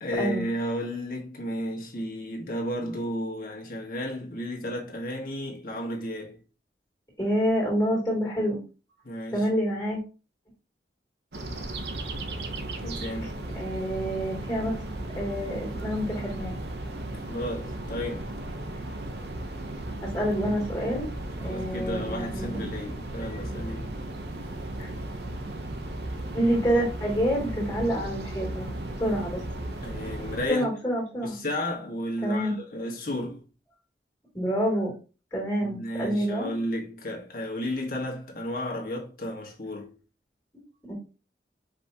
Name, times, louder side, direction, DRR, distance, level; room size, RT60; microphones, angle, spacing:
voice 1, 0.0-6.4 9.0-9.5 12.8-13.3 16.1-16.2 17.3-18.3 21.4-23.9 29.8-30.6 31.2-33.4 35.6-39.9, equal, 50° left, 1.4 m, -33 dB
voice 2, 7.2-8.6 9.3-10.0 13.2-14.7 15.1-16.6 20.0-21.1 21.4-22.7 23.3-23.4 24.8-24.9 26.3-28.7 29.0-29.4 30.5-31.3 32.2-32.6 34.3-34.9 35.3-36.5 40.9-41.0, equal, 20° left, 2.6 m, -27 dB
sound 1, 11.3-30.5, right 1 dB, 65° right, 0.7 m, -35 dB
5.2 x 3.5 x 2.8 m
head